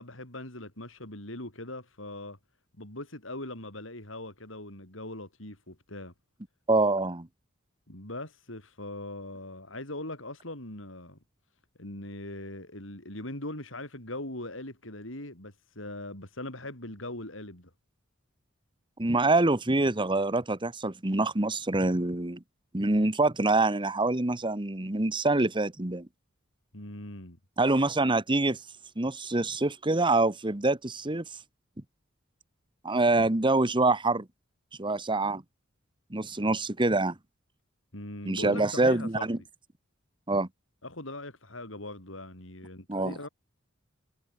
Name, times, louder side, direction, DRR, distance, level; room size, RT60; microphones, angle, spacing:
voice 1, 0.0-2.4 2.8-6.1 7.9-11.2 11.8-17.7 26.7-27.4 37.9-39.3 40.8-43.3, left 1 dB, 70° left, 7.7 m, -40 dB
voice 2, 6.7-7.3 19.0-22.4 22.7-26.1 27.6-28.6 29.0-31.2 32.8-34.3 34.8-35.4 36.1-37.1 38.2-39.4 40.3-40.5 42.9-43.2, right 2 dB, 25° right, 1.3 m, -25 dB
head